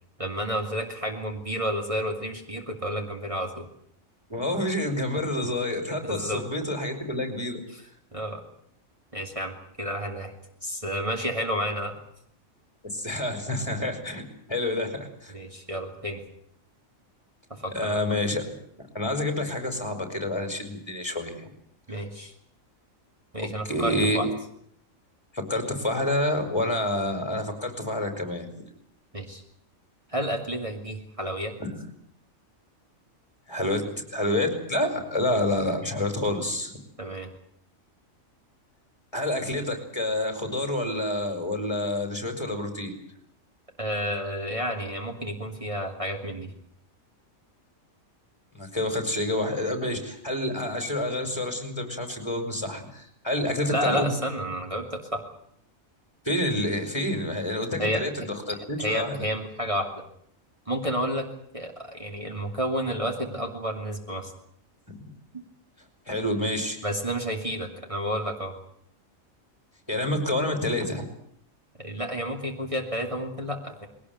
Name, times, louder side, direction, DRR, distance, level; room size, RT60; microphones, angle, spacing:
voice 1, 0.2-3.7 6.0-6.4 7.7-7.8 8.1-8.4 9.1-10.3 10.6-11.9 15.3-16.2 17.5-18.2 21.9-22.3 23.3-24.3 29.1-29.4 30.1-31.6 34.9-35.0 37.0-37.3 43.8-46.5 53.7-55.2 57.8-58.3 58.8-59.9 60.7-61.3 61.5-64.3 66.8-68.5 71.8-73.9, equal, 25° right, 1 dB, 2.8 m, -30 dB
voice 2, 4.3-7.6 12.8-14.2 14.5-15.3 17.7-18.4 18.9-21.5 23.4-24.3 25.3-28.5 31.6-31.7 33.5-33.8 34.1-36.8 39.1-42.9 48.5-54.1 56.2-58.3 58.7-59.2 66.1-66.8 69.9-71.1, left 1 dB, 20° left, 6 dB, 5.1 m, -28 dB
21.5 x 18.5 x 9.5 m, 0.69 s
omnidirectional pair, 1.4 m